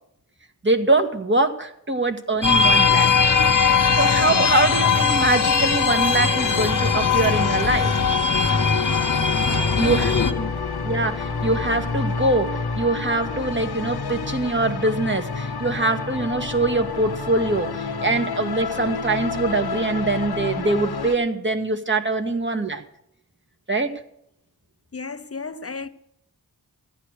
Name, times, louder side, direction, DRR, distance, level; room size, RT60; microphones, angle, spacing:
voice 1, 0.6-3.1 3.9-8.0 9.4-10.1 10.9-22.8 23.7-24.0, right 2 dB, 30° right, 1.8 m, -23 dB
sound 1, 2.4-10.3, left 5 dB, 55° left, 1.1 m, -20 dB
sound 2, 2.6-15.2, left 4 dB, 55° right, 5.9 m, -39 dB
sound 3, 5.9-21.1, left 4 dB, 85° left, 1.2 m, -29 dB
voice 2, 9.8-10.7 24.9-25.9, left 5 dB, 40° left, 0.8 m, -30 dB
14.5 x 11.0 x 6.5 m
wide cardioid pair, 65°, 37 cm